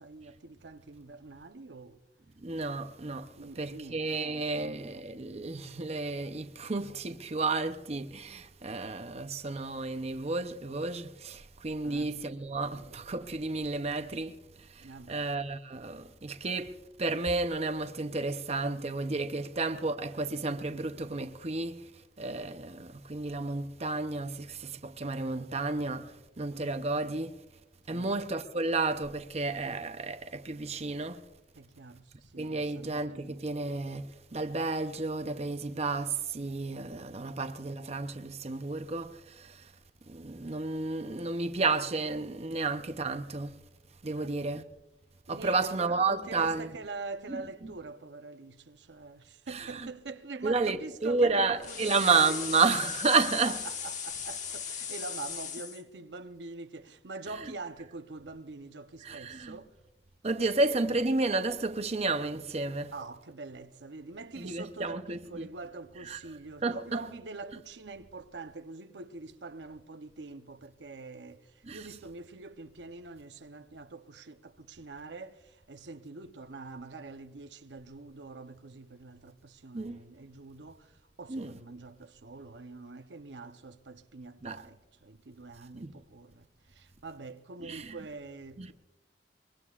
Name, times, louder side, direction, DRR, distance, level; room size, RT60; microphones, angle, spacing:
voice 1, 0.0-2.0 3.4-4.8 11.8-12.1 12.6-13.2 14.8-15.2 27.9-28.1 31.6-33.4 44.1-44.3 45.3-52.4 53.4-59.7 62.9-88.7, right 3 dB, 80° right, 0.8 m, -45 dB
voice 2, 2.4-21.9 22.2-27.3 27.9-31.2 32.4-39.7 40.1-43.6 44.0-44.6 45.3-46.7 47.3-47.7 49.5-49.9 50.4-53.6 59.0-59.6 60.2-62.9 64.4-65.5 66.1-66.2 66.6-67.0 71.7-71.8 79.7-80.0 81.3-81.5 84.4-84.6 85.7-85.9 87.6-88.0 88.6-88.7, right 3 dB, 35° right, 0.7 m, -32 dB
sound 1, 51.6-55.8, left 7 dB, 45° left, 1.3 m, -37 dB
24.0 x 22.0 x 2.5 m
head